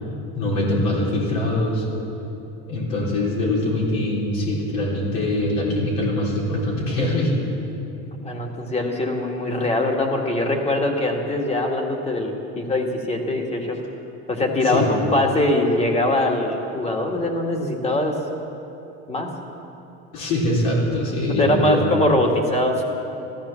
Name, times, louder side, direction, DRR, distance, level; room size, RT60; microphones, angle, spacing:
voice 1, 0.3-1.9 2.7-7.3 14.6-14.9 20.1-21.8, left 1 dB, 70° left, -5 dB, 4.1 m, -23 dB
voice 2, 8.2-13.8 14.3-18.2 19.1-19.3 21.4-22.8, left 1 dB, 20° left, 1 dB, 2.0 m, -22 dB
15.0 x 13.5 x 7.1 m, 2.9 s
cardioid pair, 130°, 33 cm